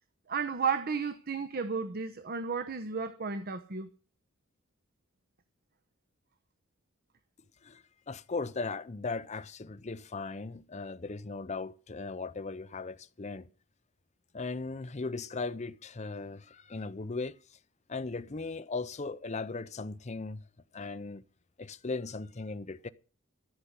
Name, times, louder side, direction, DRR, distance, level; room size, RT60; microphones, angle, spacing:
voice 1, 0.3-3.9, right 5 dB, 45° right, 0.9 m, -33 dB
voice 2, 8.1-13.5 14.3-17.4 17.9-20.4 20.7-21.2 21.6-22.9, left 3 dB, 35° left, 0.6 m, -37 dB
13.5 x 5.7 x 9.4 m
head